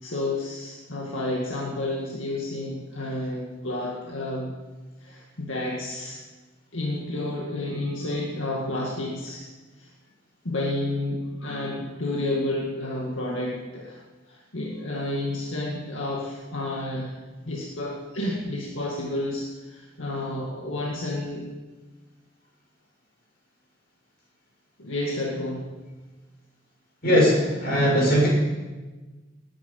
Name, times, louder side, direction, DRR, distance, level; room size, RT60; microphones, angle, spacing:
voice 1, 0.0-4.5 5.0-6.2 6.7-9.5 9.8-9.9 10.4-14.0 14.3-17.2 17.5-21.5 24.8-25.7, left 1 dB, 70° left, -2 dB, 2.1 m, -30 dB
voice 2, 27.0-28.3, equal, 50° left, -3 dB, 6.3 m, -19 dB
19.0 x 10.0 x 5.6 m, 1.2 s
head